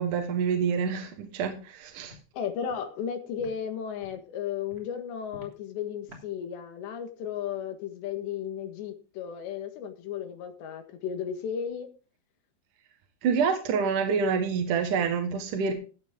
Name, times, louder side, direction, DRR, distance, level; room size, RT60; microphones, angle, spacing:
voice 1, 0.0-2.2 13.2-15.7, right 6 dB, 60° right, 4 dB, 2.5 m, -27 dB
Walk footsteps, 1.4-1.5 2.0-2.2 2.7-2.8 3.4-3.5 4.0-4.2 4.7-4.9 5.3-5.5 6.1-6.2, left 2 dB, 20° right, 3.3 m, -49 dB
voice 2, 2.3-11.9, left 8 dB, 90° left, 6 dB, 3.8 m, -34 dB
15.0 x 9.5 x 3.7 m, 0.35 s
omnidirectional pair, 4.9 m